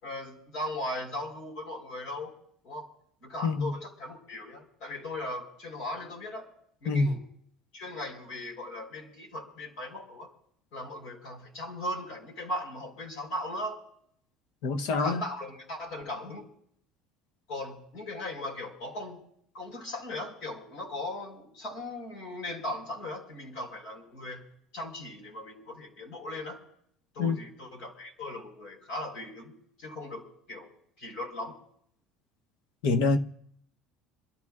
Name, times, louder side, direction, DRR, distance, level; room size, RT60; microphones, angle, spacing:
voice 1, 0.0-2.3 2.6-2.9 3.2-6.5 6.8-7.2 7.7-10.3 10.7-13.8 15.0-16.5 17.5-19.2 19.5-24.4 24.7-26.6 27.1-29.5 29.8-30.7 31.0-31.6, left 1 dB, 65° left, 4.4 m, -38 dB
voice 2, 6.9-7.2 14.6-15.2 27.2-27.4 32.8-33.2, left 3 dB, 80° left, 1.0 m, -25 dB
27.0 x 13.5 x 2.4 m
cardioid pair, 165°, 0 cm